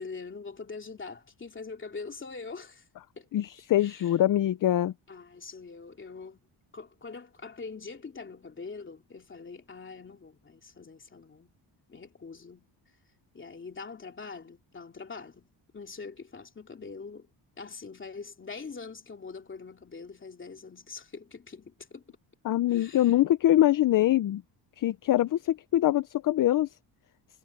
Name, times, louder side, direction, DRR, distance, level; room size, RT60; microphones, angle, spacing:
voice 1, 0.0-2.9 3.2-3.3 3.8-4.2 5.1-6.4 6.7-11.5 11.9-12.7 13.3-17.3 17.6-22.1 22.7-23.2, left 4 dB, 25° left, 2.8 m, -43 dB
voice 2, 3.3-4.9 22.5-24.4 24.8-26.7, left 13 dB, 50° left, 0.5 m, -24 dB
wide cardioid pair, 170°, 45 cm